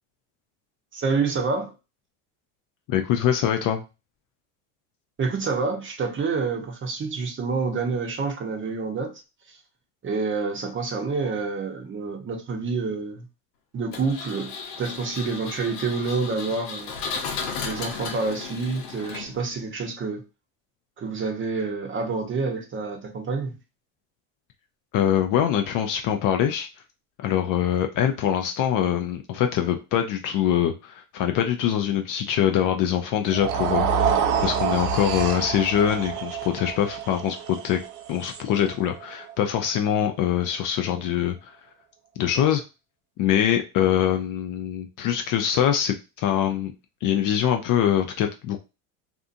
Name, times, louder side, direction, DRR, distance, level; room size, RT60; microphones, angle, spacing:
voice 1, 0.9-1.7 5.2-9.2 9.5-9.6 10.0-13.2 13.7-14.5 14.8-16.9 17.6-20.2 21.0-23.5, right 4 dB, 25° right, 0.7 m, -28 dB
voice 2, 2.9-3.8 24.9-26.7 27.2-33.9 34.4-37.8 38.1-41.5 42.2-42.6 43.2-46.7 47.0-48.6, left 10 dB, 45° left, 0.4 m, -23 dB
Engine, 13.9-19.6, left 5 dB, 80° left, 0.9 m, -35 dB
sound 1, 33.3-39.6, right 7 dB, 85° right, 0.7 m, -27 dB
2.6 x 2.4 x 2.5 m
supercardioid pair, 100°, 46 cm